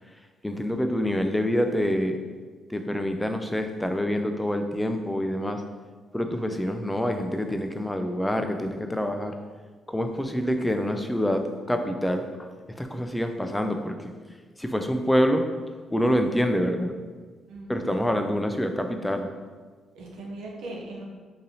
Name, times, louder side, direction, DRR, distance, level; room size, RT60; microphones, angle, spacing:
voice 1, 0.4-2.2 2.7-5.6 6.1-9.3 9.9-14.1 14.6-15.5 15.9-16.9 17.7-19.3, equal, 5° left, 6 dB, 0.3 m, -26 dB
voice 2, 17.5-18.2 19.9-21.0, right 2 dB, 80° right, -1 dB, 0.7 m, -39 dB
3.9 x 2.6 x 2.8 m, 1.5 s
cardioid pair, 90°, 0 cm